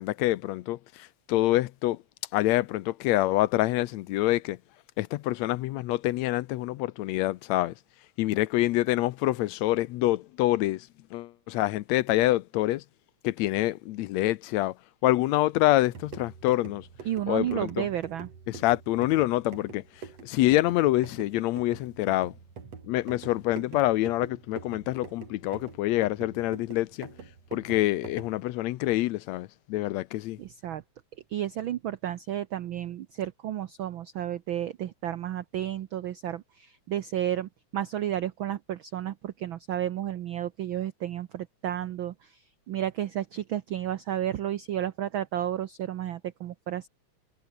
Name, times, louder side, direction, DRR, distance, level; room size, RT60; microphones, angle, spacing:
voice 1, 0.0-2.0 2.3-4.6 5.0-7.7 8.2-12.8 13.2-14.8 15.0-16.9 17.3-17.9 18.5-19.8 20.2-22.3 22.8-27.1 27.5-30.4, left 16 dB, 75° left, 1.8 m, -26 dB
sound 1, 15.8-28.4, right 5 dB, 60° right, 4.6 m, -45 dB
voice 2, 17.0-18.3 30.4-30.8 31.3-46.9, right 11 dB, 85° right, 1.1 m, -32 dB
omnidirectional pair, 3.3 m